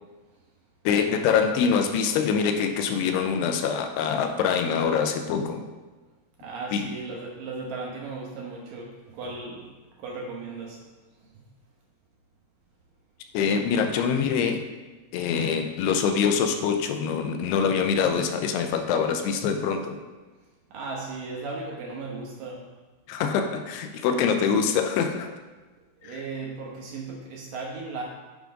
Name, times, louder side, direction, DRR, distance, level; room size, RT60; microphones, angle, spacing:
voice 1, 0.9-5.7 6.7-6.9 13.3-14.6 15.1-20.0 23.1-25.3 26.0-26.2, left 6 dB, 90° left, 6 dB, 2.7 m, -24 dB
voice 2, 6.4-9.7 10.0-10.8 11.2-11.3 20.7-22.7 24.2-24.3 26.0-28.0, right 3 dB, 70° right, -2 dB, 2.3 m, -36 dB
9.2 x 3.8 x 5.1 m, 1.3 s
omnidirectional pair, 4.7 m